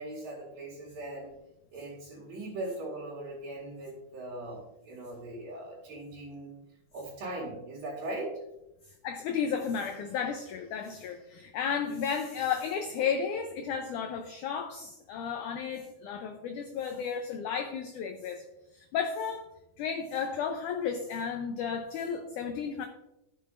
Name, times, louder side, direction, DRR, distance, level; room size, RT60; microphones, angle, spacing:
voice 1, 0.0-1.4 1.7-6.5 6.9-8.4, right 2 dB, 65° right, -6 dB, 3.4 m, -39 dB
voice 2, 9.0-18.4 18.7-19.5 19.8-22.9, left 6 dB, 85° left, 6 dB, 1.7 m, -33 dB
13.0 x 7.3 x 2.5 m, 0.91 s
omnidirectional pair, 4.4 m